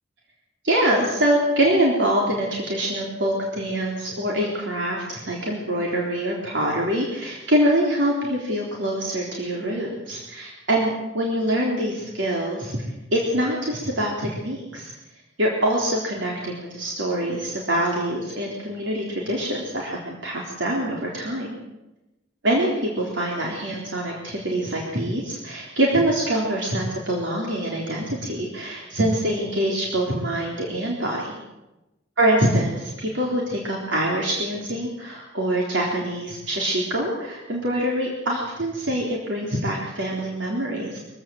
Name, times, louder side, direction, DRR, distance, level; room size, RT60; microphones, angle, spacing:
voice 1, 0.6-12.8 13.1-14.9 15.4-21.5 22.4-31.4 32.2-41.0, right 1 dB, 75° right, -2 dB, 3.8 m, -24 dB
23.5 x 16.0 x 7.8 m, 1.0 s
head